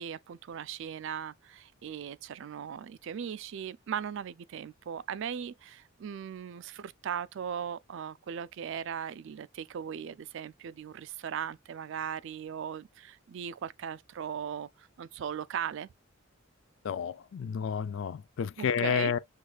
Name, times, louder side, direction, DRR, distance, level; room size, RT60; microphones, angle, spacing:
voice 1, 0.0-15.9 18.6-19.1, right 8 dB, 60° right, 0.3 m, -38 dB
voice 2, 16.8-19.2, left 7 dB, 65° left, 0.3 m, -30 dB
6.3 x 3.2 x 2.3 m
head